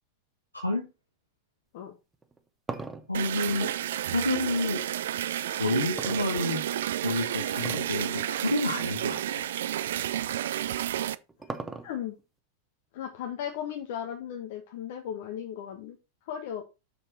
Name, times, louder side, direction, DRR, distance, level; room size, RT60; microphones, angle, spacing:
sound 1, 2.1-4.6 6.0-6.8 7.6-8.0 8.3-8.4 9.2-9.3 10.7-12.2, right 3 dB, 10° right, 1.1 m, -39 dB
voice 1, 3.1-3.7 4.1-4.8 5.6-6.7 7.0-9.5, left 1 dB, 85° left, 2 dB, 1.4 m, -29 dB
sound 2, 3.1-11.2, right 11 dB, 60° right, 0.4 m, -31 dB
voice 2, 11.8-12.1 12.9-16.0 16.3-16.7, left 9 dB, 50° left, 2 dB, 1.4 m, -36 dB
7.1 x 7.0 x 4.3 m, 0.27 s
figure-of-eight pair, 90°, 0 cm